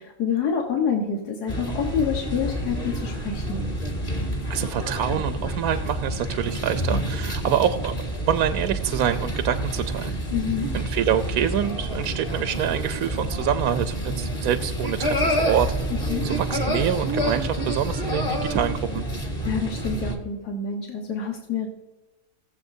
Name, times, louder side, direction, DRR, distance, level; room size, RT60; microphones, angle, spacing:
voice 1, 0.0-3.7 10.3-10.7 15.9-16.3 19.4-21.7, left 6 dB, 90° left, 2 dB, 1.8 m, -27 dB
sound 1, 1.5-20.1, equal, 25° left, 1.8 m, -28 dB
voice 2, 4.5-7.9 8.3-10.1 10.7-15.7 16.2-19.0, right 9 dB, 75° right, 9 dB, 1.0 m, -26 dB
20.0 x 7.4 x 2.7 m, 1.1 s
omnidirectional pair, 1.6 m